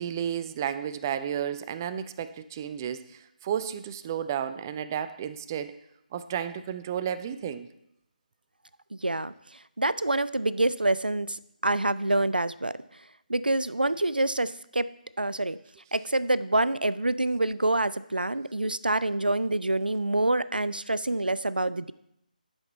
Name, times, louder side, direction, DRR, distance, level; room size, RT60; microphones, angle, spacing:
voice 1, 0.0-5.7 6.1-7.7, right 9 dB, 25° right, 12 dB, 0.4 m, -32 dB
voice 2, 8.9-9.3 9.8-11.4 11.6-12.8 13.3-14.9 15.2-15.6 15.9-21.9, right 2 dB, 90° right, 17 dB, 0.4 m, -26 dB
10.5 x 5.8 x 4.4 m, 0.79 s
figure-of-eight pair, 150°, 5 cm